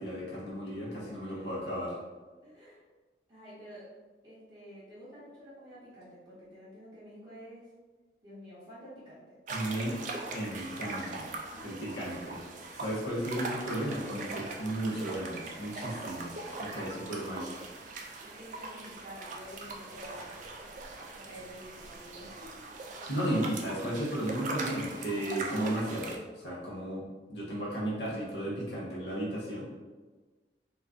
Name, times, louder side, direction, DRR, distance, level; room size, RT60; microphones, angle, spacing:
voice 1, 0.0-2.0 9.5-10.0 10.3-11.3 11.6-12.4 12.8-16.3 16.6-17.4 23.1-26.1 26.4-27.0 27.3-29.6, right 1 dB, 75° left, -6 dB, 0.8 m, -34 dB
voice 2, 0.8-1.5 2.4-2.8 3.3-3.9 4.2-7.7 8.2-9.2 11.5-12.1 16.9-17.2 17.8-17.9 18.2-20.4 21.1-22.7, equal, 20° right, -13 dB, 0.7 m, -50 dB
sound 1, 9.5-26.2, right 3 dB, 45° right, 0.3 m, -41 dB
2.5 x 2.3 x 3.4 m, 1.3 s
head